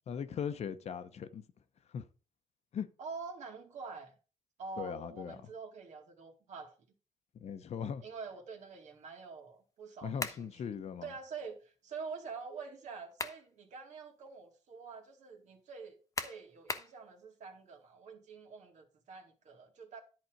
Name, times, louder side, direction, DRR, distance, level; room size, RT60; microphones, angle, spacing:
voice 1, 0.1-1.4 1.9-2.1 2.7-2.9 4.8-5.4 7.3-8.0 10.0-11.1, left 7 dB, 60° left, 0.9 m, -39 dB
voice 2, 3.0-4.1 4.6-6.7 8.0-10.7 11.0-20.0, right 5 dB, 70° right, 2.3 m, -46 dB
sound 1, 10.2-10.5 12.8-13.5 14.0-14.1 16.2-17.0, left 3 dB, 25° left, 1.1 m, -38 dB
10.5 x 4.3 x 6.5 m
cardioid pair, 100°, 13 cm